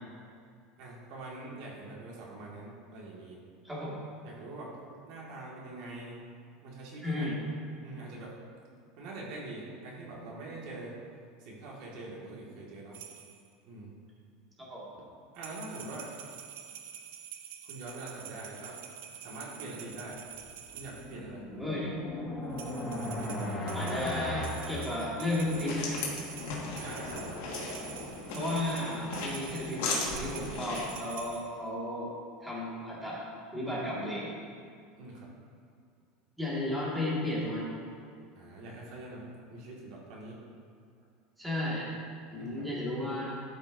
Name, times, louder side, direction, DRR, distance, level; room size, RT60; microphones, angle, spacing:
voice 1, 0.8-3.4 4.2-4.7 5.1-6.2 6.6-7.3 7.8-8.3 9.0-10.9 11.4-13.0 13.6-14.0 15.3-16.1 17.6-18.8 19.2-20.2 20.7-21.4 26.8-27.3 35.0-35.3 38.3-40.4 42.3-42.7, right 2 dB, 60° right, -4 dB, 1.8 m, -44 dB
voice 2, 3.6-4.0 7.0-7.4 14.6-14.9 21.6-21.9 23.7-26.0 28.3-32.1 32.4-33.2 33.5-34.3 36.4-37.7 41.4-41.9 42.3-43.3, left 1 dB, 5° right, -7 dB, 1.9 m, -33 dB
sound 1, 12.9-13.5 15.3-21.2 22.5-31.5, right 9 dB, 85° right, 0.6 m, -47 dB
sound 2, 20.5-25.7, left 1 dB, 20° left, 1.1 m, -37 dB
sound 3, 25.3-31.0, left 3 dB, 75° left, 1.6 m, -37 dB
12.5 x 5.3 x 2.6 m, 2.2 s
supercardioid pair, 155°, 0 cm